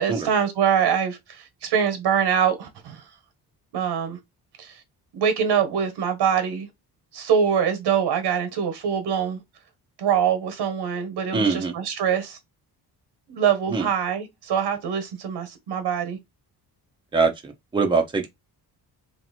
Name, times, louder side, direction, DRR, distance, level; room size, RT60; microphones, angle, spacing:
voice 1, 0.0-3.0 3.7-4.2 4.6-4.8 5.1-6.7 7.1-9.4 10.0-12.4 13.3-16.2, right 8 dB, 85° right, 1.3 m, -24 dB
voice 2, 11.3-11.7 13.7-13.9 17.1-18.3, right 4 dB, 10° right, 0.7 m, -23 dB
3.2 x 2.9 x 4.2 m
cardioid pair, 155°, 39 cm